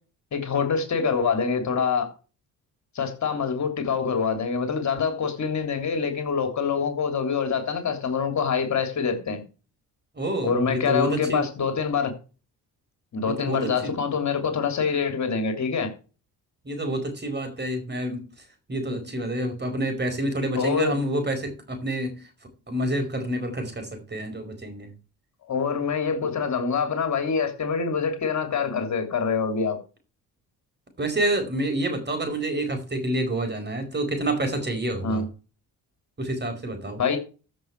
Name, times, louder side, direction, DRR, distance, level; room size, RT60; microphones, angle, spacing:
voice 1, 0.3-2.1 2.9-9.4 10.4-12.1 13.1-15.9 20.5-20.9 25.5-29.8 35.0-35.2 37.0-37.2, left 6 dB, 50° left, 3.2 m, -25 dB
voice 2, 10.1-11.5 13.3-13.9 16.6-18.3 18.7-22.2 22.7-24.9 31.0-35.3 36.2-37.0, right 1 dB, 30° right, 4.8 m, -28 dB
14.0 x 6.3 x 4.7 m
cardioid pair, 90°, 36 cm